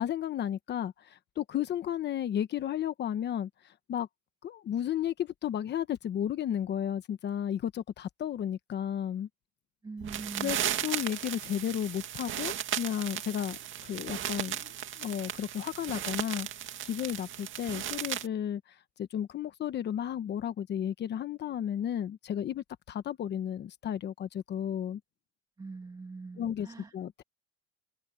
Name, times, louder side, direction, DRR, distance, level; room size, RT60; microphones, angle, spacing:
voice 1, 0.0-4.1 4.4-9.3 10.4-10.6 10.8-16.5 16.8-18.6 19.0-25.0 26.3-27.2, left 10 dB, 35° left, 1.1 m, -33 dB
voice 2, 9.8-10.9 25.6-26.9, right 3 dB, 15° right, 2.1 m, -43 dB
sound 1, 10.0-18.3, right 11 dB, 40° right, 2.2 m, -36 dB
cardioid pair, 155°, 30 cm